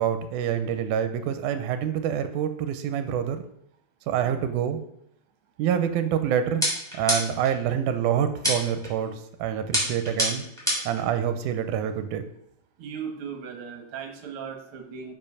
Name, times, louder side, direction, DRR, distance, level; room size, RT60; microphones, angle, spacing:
voice 1, 0.0-3.4 4.1-4.8 5.6-6.6 6.9-10.5 10.9-12.2, right 9 dB, 85° right, 9 dB, 2.1 m, -26 dB
sound 1, 6.6-7.5 8.4-8.9 9.7-11.0, equal, ahead, 3.3 m, -26 dB
voice 2, 12.8-15.1, right 6 dB, 55° right, 4 dB, 1.8 m, -37 dB
7.6 x 4.9 x 5.5 m, 0.76 s
omnidirectional pair, 3.5 m